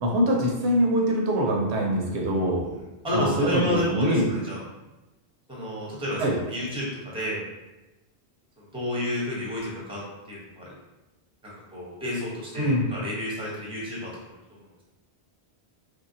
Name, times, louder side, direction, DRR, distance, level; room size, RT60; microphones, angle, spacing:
voice 1, 0.0-2.7 3.1-4.3 6.2-6.3 12.6-12.9, equal, 85° right, -1 dB, 1.0 m, -23 dB
voice 2, 2.3-2.7 3.0-4.6 5.5-7.4 8.6-10.0 10.3-10.7 11.4-14.1, left 1 dB, 5° right, -5 dB, 0.8 m, -31 dB
3.1 x 2.8 x 2.7 m, 1.0 s
omnidirectional pair, 1.1 m